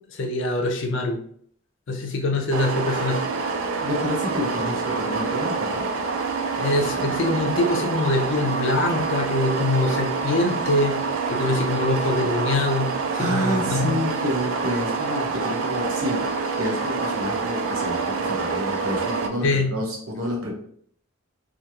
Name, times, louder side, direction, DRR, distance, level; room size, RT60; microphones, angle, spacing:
voice 1, 0.1-1.2 1.9-3.2 6.6-11.0 11.3-13.9 19.4-19.7, left 2 dB, 60° left, 3 dB, 0.5 m, -24 dB
sound 1, 2.5-19.3, right 4 dB, 65° right, 0.3 m, -26 dB
voice 2, 3.8-5.9 13.2-20.5, left 1 dB, 85° right, -1 dB, 0.8 m, -29 dB
2.9 x 2.4 x 2.3 m, 0.62 s
head